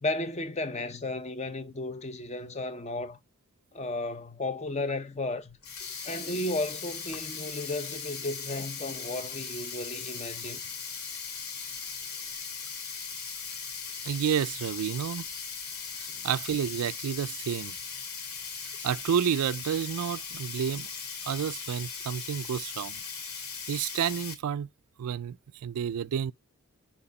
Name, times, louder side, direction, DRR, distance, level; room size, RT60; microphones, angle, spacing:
voice 1, 0.0-3.2 3.7-5.6 6.0-10.6 16.1-16.2, left 2 dB, 30° left, 0.7 m, -34 dB
Sink (filling or washing), 5.5-24.3, left 6 dB, 80° left, 2.1 m, -39 dB
voice 2, 14.0-15.3 16.0-17.7 18.8-20.9 21.2-23.0 23.7-24.7 25.0-26.3, right 8 dB, 85° right, 0.4 m, -30 dB
6.9 x 2.9 x 5.2 m
head